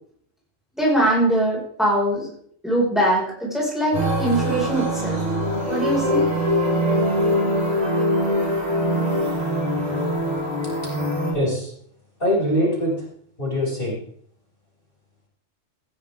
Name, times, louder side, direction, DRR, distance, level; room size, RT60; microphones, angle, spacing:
voice 1, 0.8-2.3 2.6-5.2 5.7-6.3, right 1 dB, ahead, -5 dB, 5.2 m, -22 dB
sound 1, 3.9-11.3, equal, 35° right, 5.8 m, -22 dB
voice 2, 11.3-11.7 12.2-12.9 13.4-14.0, equal, 45° left, -6 dB, 6.5 m, -22 dB
16.5 x 13.0 x 3.6 m, 0.63 s
omnidirectional pair, 1.3 m